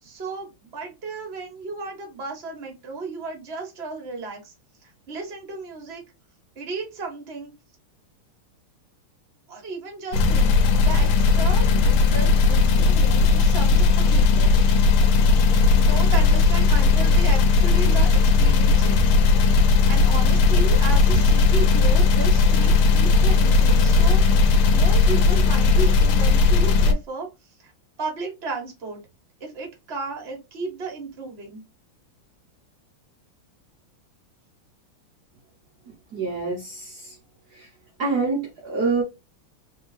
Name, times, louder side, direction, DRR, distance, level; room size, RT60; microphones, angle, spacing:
voice 1, 0.0-4.5 4.8-6.0 6.5-7.5 9.5-14.8 15.7-19.0 19.4-19.5 19.9-24.2 24.7-27.3 27.6-27.7 28.0-29.0 29.4-31.6, right 4 dB, 35° right, 1.4 m, -34 dB
sound 1, 10.1-26.9, left 4 dB, 80° left, 1.6 m, -17 dB
voice 2, 36.1-37.2 37.5-37.7 38.0-39.0, right 4 dB, 55° right, 1.3 m, -26 dB
3.5 x 3.4 x 3.2 m
omnidirectional pair, 2.4 m